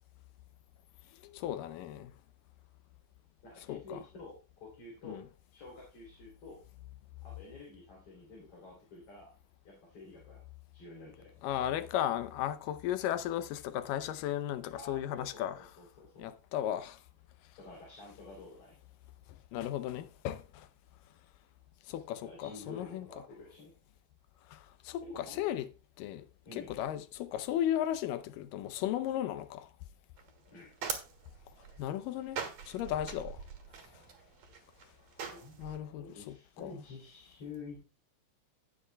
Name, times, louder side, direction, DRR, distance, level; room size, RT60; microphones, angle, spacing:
voice 1, 1.2-2.1 3.7-4.0 5.0-5.2 11.4-15.6 16.2-17.0 19.5-20.7 21.9-23.1 24.5-25.7 26.0-26.2 26.5-29.7 31.8-32.4 32.7-33.4 35.6-36.4 36.6-36.7, left 12 dB, 85° left, 2.3 m, -35 dB
voice 2, 3.4-5.3 5.5-6.6 7.2-9.3 9.6-10.4 10.7-11.3 14.8-16.3 17.6-18.8 22.2-23.7 25.0-25.5 26.5-26.7 30.5-30.7 35.3-35.6 36.0-37.9, left 3 dB, 45° left, 3.9 m, -49 dB
sound 1, 30.2-35.8, right 6 dB, 60° right, 2.7 m, -43 dB
16.0 x 7.8 x 2.2 m
omnidirectional pair, 3.8 m